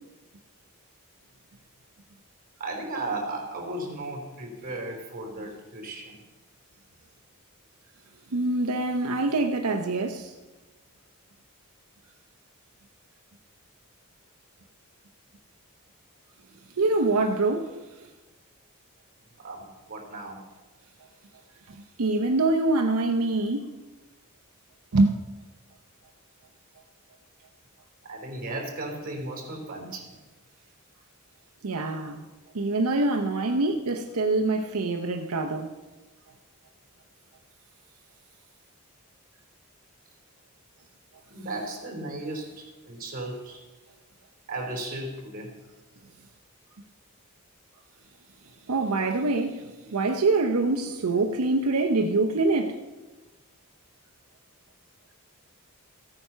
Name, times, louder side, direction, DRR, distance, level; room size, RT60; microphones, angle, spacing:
voice 1, 2.6-6.2 19.4-20.4 22.9-23.1 28.1-30.1 41.3-43.6 44.5-45.5, right 2 dB, 40° right, 3.4 m, -35 dB
voice 2, 8.3-10.3 16.8-17.8 21.7-23.7 24.9-25.2 31.6-32.3 32.5-35.8 48.7-52.8, right 2 dB, 85° right, 0.7 m, -25 dB
15.0 x 9.0 x 5.6 m
head